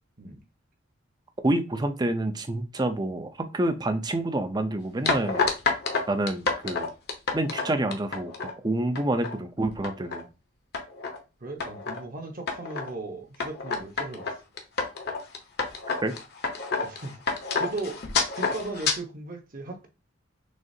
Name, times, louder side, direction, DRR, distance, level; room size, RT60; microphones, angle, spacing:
voice 1, 1.4-5.4 6.1-6.9 7.3-8.3 8.6-10.3 16.0-16.1, right 1 dB, 20° right, 0.5 m, -27 dB
sound 1, 5.1-8.5 9.0-9.3 9.7-10.2 10.7-11.2 11.6-12.0 12.5-12.9 13.4-19.0, left 4 dB, 55° left, 0.8 m, -29 dB
voice 2, 11.4-14.3 16.8-17.2 17.6-18.0 18.3-19.9, right 2 dB, 45° right, 0.9 m, -37 dB
6.3 x 2.4 x 2.7 m
head